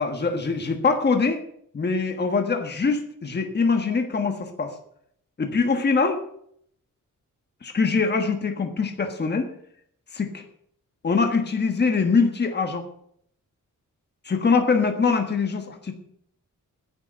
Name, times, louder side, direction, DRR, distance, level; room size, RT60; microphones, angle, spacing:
voice 1, 0.0-1.4 1.7-4.7 5.4-6.2 7.6-9.5 10.1-10.4 11.0-12.8 14.2-15.9, left 4 dB, 35° left, 5 dB, 1.4 m, -23 dB
10.5 x 9.2 x 7.9 m, 0.67 s
wide cardioid pair, 160°, 32 cm